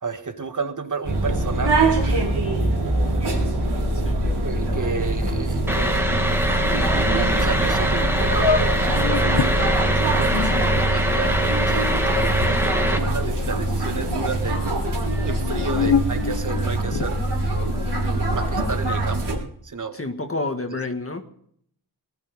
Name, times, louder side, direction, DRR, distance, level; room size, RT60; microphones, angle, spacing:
voice 1, 0.0-2.2 4.4-6.3 6.9-11.4 11.6-11.9 12.5-14.6 15.3-17.2 18.3-20.0, right 4 dB, 50° right, 8 dB, 1.8 m, -31 dB
sound 1, 1.0-19.4, right 1 dB, 85° right, 4.9 m, -23 dB
sound 2, 5.7-13.0, right 1 dB, 5° right, 2.4 m, -24 dB
sound 3, 7.8-7.9 8.4-9.5 10.2-13.7 14.0-14.6 15.2-17.2, left 6 dB, 80° left, 1.1 m, -27 dB
voice 2, 19.9-21.3, left 2 dB, 35° left, 5 dB, 1.8 m, -29 dB
20.0 x 12.0 x 5.3 m, 0.64 s
wide cardioid pair, 90°, 41 cm